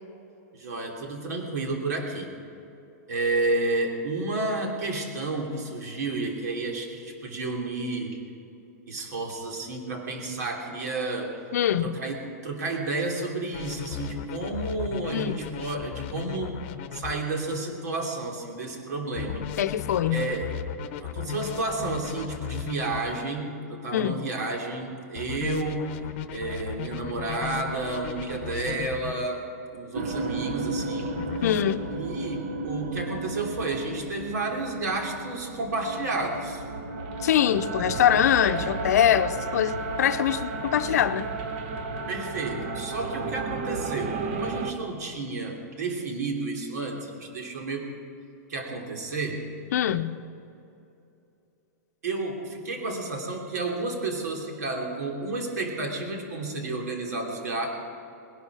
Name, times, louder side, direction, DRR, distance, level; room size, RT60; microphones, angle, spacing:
voice 1, 0.5-2.3 3.1-8.2 8.9-11.4 11.8-16.6 16.9-19.5 20.1-20.5 20.9-25.9 26.3-31.2 31.9-36.6 42.1-47.9 48.5-49.4 52.0-57.7, right 2 dB, 80° right, 1 dB, 3.1 m, -31 dB
voice 2, 11.5-12.0 15.1-15.3 19.6-20.4 23.9-24.3 31.4-31.9 37.2-41.3 49.7-50.2, left 10 dB, 70° left, 11 dB, 0.7 m, -23 dB
sound 1, 13.5-17.1 19.2-23.1 25.2-29.1 31.2-31.8, left 9 dB, 35° left, 0.9 m, -36 dB
sound 2, 29.9-44.7, right 3 dB, 40° right, 1.0 m, -33 dB
21.0 x 11.0 x 4.8 m, 2.8 s
supercardioid pair, 175°, 9 cm